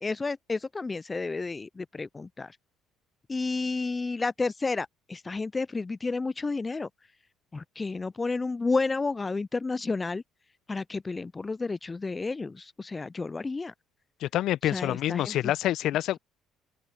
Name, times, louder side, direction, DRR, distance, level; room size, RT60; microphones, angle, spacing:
voice 1, 0.0-2.5 3.3-6.9 7.5-10.2 10.7-13.7 14.6-15.5, left 3 dB, 25° left, 0.4 m, -31 dB
voice 2, 14.2-16.2, left 13 dB, 60° left, 0.9 m, -27 dB
open air
hypercardioid pair, 60°, 0 cm